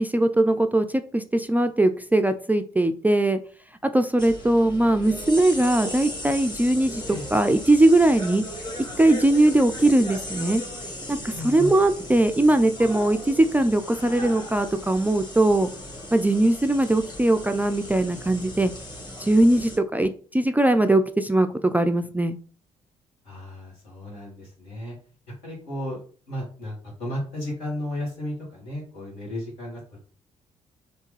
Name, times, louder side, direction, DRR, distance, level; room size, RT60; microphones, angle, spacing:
voice 1, 0.0-3.4 3.8-8.4 9.0-10.6 11.1-15.7 16.1-18.7 19.2-22.4, right 1 dB, 10° right, 7 dB, 0.3 m, -20 dB
sound 1, 4.2-19.8, left 1 dB, 25° left, 1.5 m, -37 dB
voice 2, 11.3-11.7 23.2-25.0 25.4-26.0 26.3-30.0, left 1 dB, 75° left, -5 dB, 1.8 m, -34 dB
3.4 x 2.7 x 3.2 m, 0.40 s
figure-of-eight pair, 45°, 17 cm